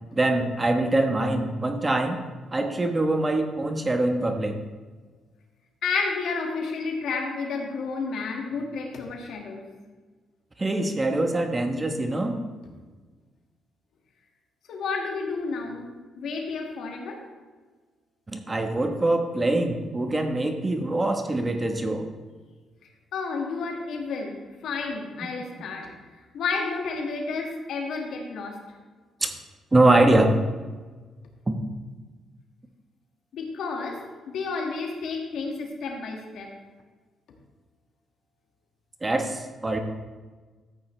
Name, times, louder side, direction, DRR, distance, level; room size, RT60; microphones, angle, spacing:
voice 1, 0.1-2.2 2.5-4.6 10.6-12.4 18.3-22.1 29.2-29.3 29.7-30.3 31.5-31.6 39.0-39.8, right 2 dB, 20° right, 5 dB, 1.2 m, -23 dB
voice 2, 5.8-9.7 14.7-15.9 16.2-17.2 23.1-25.9 26.3-28.6 33.3-36.5, left 4 dB, 70° left, 1 dB, 2.0 m, -31 dB
13.5 x 8.6 x 3.3 m, 1.3 s
cardioid pair, 90°, 0 cm